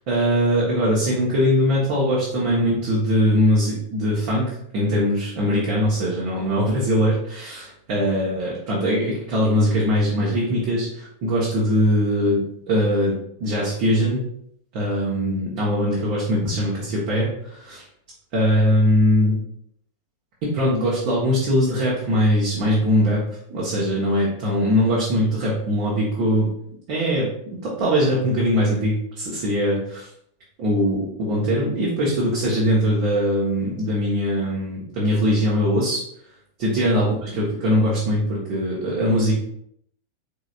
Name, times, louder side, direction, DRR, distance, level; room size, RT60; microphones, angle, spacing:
voice 1, 0.0-14.2 14.7-17.8 18.3-19.4 20.4-23.2 23.5-26.5 26.9-30.1 30.6-36.0 36.6-39.3, equal, 45° right, -5 dB, 1.2 m, -21 dB
4.8 x 3.9 x 2.5 m, 0.71 s
figure-of-eight pair, 90°, 0 cm